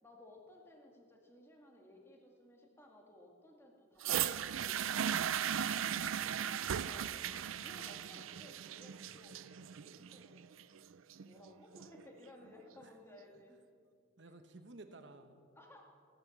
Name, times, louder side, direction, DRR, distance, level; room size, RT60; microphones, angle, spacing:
voice 1, 0.0-4.7 5.0-5.2 6.8-7.2 7.6-10.5 11.2-13.6 15.6-15.8, left 1 dB, 10° left, 0 dB, 2.1 m, -58 dB
sound 1, 4.0-12.0 12.8-12.9, right 9 dB, 85° right, 0.5 m, -37 dB
voice 2, 5.9-6.8 7.3-7.7 12.7-12.9 14.2-15.5, right 2 dB, 60° right, 8 dB, 1.0 m, -56 dB
17.0 x 10.5 x 7.2 m, 2.2 s
head